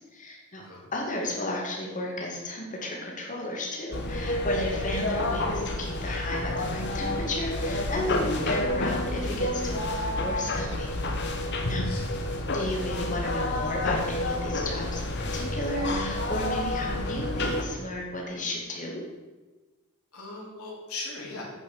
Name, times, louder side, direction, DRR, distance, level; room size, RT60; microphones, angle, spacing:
voice 1, 0.0-0.6 0.9-10.9 11.7-11.8 12.5-19.0, left 1 dB, 35° left, -1 dB, 2.3 m, -33 dB
voice 2, 0.6-0.9 11.8-12.3 20.1-21.4, left 3 dB, 80° left, -4 dB, 3.2 m, -39 dB
sound 1, 3.9-17.6, left 1 dB, 50° left, 1.2 m, -29 dB
9.1 x 5.7 x 7.2 m, 1.2 s
head